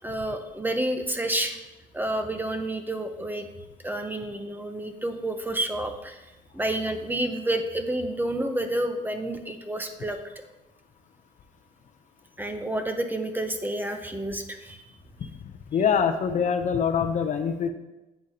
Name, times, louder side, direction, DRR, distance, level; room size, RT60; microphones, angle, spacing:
voice 1, 0.0-1.6 1.9-3.5 3.8-6.2 6.5-10.2 12.4-14.8, right 1 dB, 10° right, 6 dB, 0.8 m, -29 dB
voice 2, 15.7-17.7, left 7 dB, 45° left, 8 dB, 0.7 m, -24 dB
10.0 x 8.1 x 2.9 m, 1.0 s
cardioid pair, 110°, 17 cm